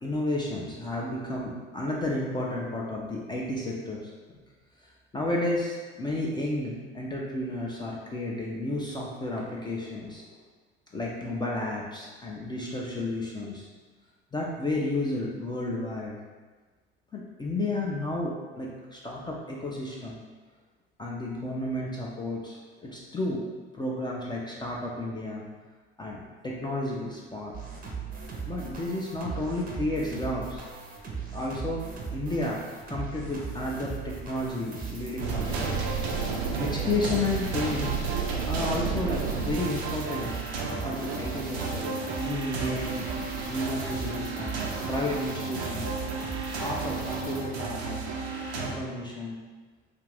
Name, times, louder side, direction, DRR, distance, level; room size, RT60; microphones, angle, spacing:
voice 1, 0.0-4.1 5.1-10.3 10.9-13.7 14.3-16.2 17.1-20.2 21.0-23.4 23.7-25.5 26.0-27.5 28.5-30.6 31.3-31.8 32.1-35.8 36.6-37.9 38.5-40.3 40.8-43.0 43.5-44.6 44.9-45.9 46.6-48.2 48.6-49.4, left 2 dB, 15° left, -4 dB, 0.4 m, -32 dB
sound 1, 27.5-47.4, right 5 dB, 30° right, 0.6 m, -39 dB
sound 2, 35.2-48.7, right 4 dB, 85° right, 0.5 m, -32 dB
2.5 x 2.4 x 3.3 m, 1.4 s
hypercardioid pair, 80°, 31 cm